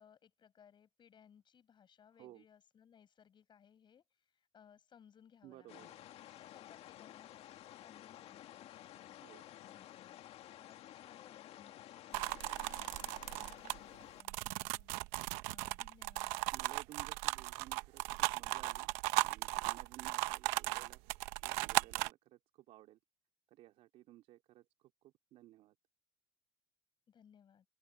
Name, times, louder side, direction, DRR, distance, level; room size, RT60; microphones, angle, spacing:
voice 1, 0.0-5.9 6.3-16.3 27.1-27.6, left 8 dB, 45° left, 6.8 m, -64 dB
voice 2, 5.4-6.0 9.2-9.4 16.5-21.0 21.4-23.0 23.5-25.7, right 15 dB, 65° right, 3.1 m, -57 dB
sound 1, 5.7-14.2, left 13 dB, 60° left, 2.1 m, -53 dB
sound 2, 12.1-22.1, right 21 dB, 85° right, 1.0 m, -37 dB
open air
supercardioid pair, 85°, 11 cm